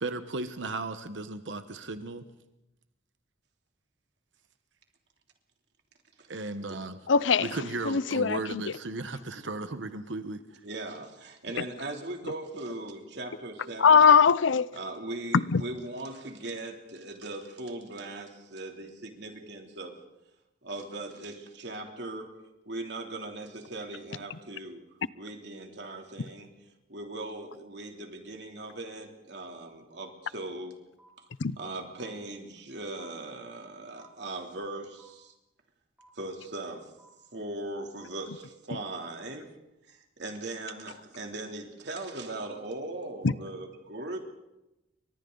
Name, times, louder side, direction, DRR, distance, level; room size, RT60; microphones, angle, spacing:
voice 1, 0.0-2.2 6.3-7.0 7.4-10.4, right 3 dB, 80° right, 9 dB, 1.2 m, -35 dB
voice 2, 7.1-7.5 7.8-8.6 11.6-11.7 13.8-14.7 15.3-15.6 31.4-31.6 43.2-43.3, left 6 dB, 90° left, 18 dB, 0.6 m, -21 dB
voice 3, 10.6-14.1 14.7-19.9 20.6-22.3 22.6-24.8 25.1-26.5 26.9-30.8 31.6-35.3 36.1-36.9 37.3-39.5 39.9-44.2, right 2 dB, 65° right, 2 dB, 3.2 m, -39 dB
sound 1, 30.0-30.1 31.0-31.1 32.0-32.1 33.0-33.1 34.0-34.1 35.0-35.1 36.0-36.1 37.0-37.1 38.0-38.1 39.0-39.1, right 1 dB, 5° right, 6.9 m, -57 dB
30.0 x 24.0 x 4.0 m, 0.93 s
head